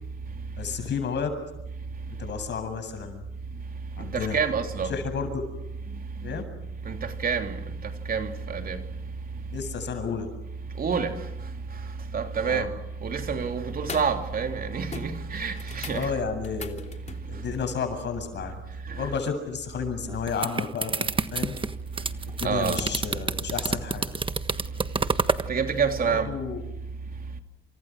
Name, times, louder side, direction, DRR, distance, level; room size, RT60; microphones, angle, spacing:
voice 1, 0.6-1.3 2.2-3.2 4.0-4.4 4.8-5.4 6.2-6.4 9.5-10.3 12.4-12.7 15.9-16.8 17.3-18.6 19.0-21.6 22.3-24.1 26.0-26.6, left 6 dB, 65° left, 7.9 m, -32 dB
voice 2, 4.1-4.9 6.8-7.6 8.1-8.8 10.8-11.2 12.1-12.7 13.0-16.1 18.9-19.0 22.4-22.8 25.5-26.3, right 5 dB, 45° right, 3.3 m, -27 dB
sound 1, 13.0-13.3 13.8-14.2 14.5-14.6 14.9-17.3 19.3-19.4, left 5 dB, 35° left, 3.1 m, -41 dB
sound 2, 20.1-25.5, right 4 dB, 25° right, 1.4 m, -28 dB
29.0 x 27.5 x 6.4 m
cardioid pair, 90°, 20 cm